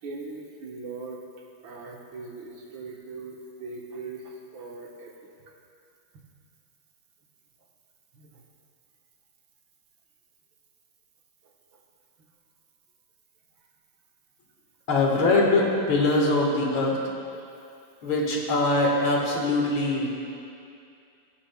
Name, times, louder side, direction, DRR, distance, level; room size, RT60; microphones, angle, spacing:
voice 1, 0.0-1.2 1.6-5.1 8.1-8.4, right 3 dB, 70° right, -1 dB, 1.8 m, -40 dB
voice 2, 14.9-17.2 18.0-20.1, left 2 dB, 70° left, -2 dB, 2.3 m, -23 dB
19.5 x 9.9 x 2.2 m, 2.5 s
omnidirectional pair, 2.3 m